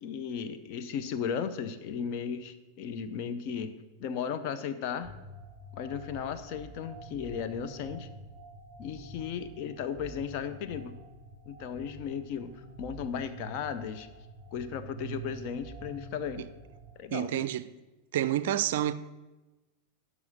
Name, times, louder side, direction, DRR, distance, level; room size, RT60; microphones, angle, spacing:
voice 1, 0.0-3.7 4.0-5.1 5.7-8.1 8.8-10.9 11.5-12.5 12.8-14.1 14.5-16.5 17.0-17.3, left 7 dB, 45° left, 0.8 m, -35 dB
sound 1, 5.0-16.9, right 2 dB, 15° right, 2.2 m, -47 dB
voice 2, 17.1-17.7 18.1-18.9, right 12 dB, 55° right, 0.4 m, -29 dB
12.0 x 5.1 x 6.3 m
figure-of-eight pair, 90°, 0 cm